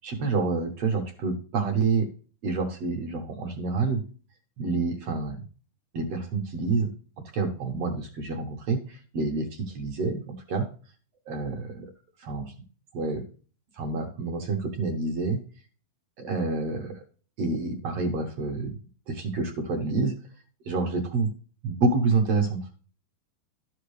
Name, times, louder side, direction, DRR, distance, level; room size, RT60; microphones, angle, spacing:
voice 1, 0.0-2.1 2.4-4.0 4.6-5.4 5.9-6.9 7.2-10.7 11.3-11.9 12.2-12.5 12.9-13.2 13.7-15.4 16.2-17.0 17.4-18.7 19.1-20.1 20.7-21.3 21.6-22.7, right 3 dB, 55° right, 3 dB, 2.0 m, -28 dB
13.0 x 5.6 x 3.3 m, 0.38 s
omnidirectional pair, 4.1 m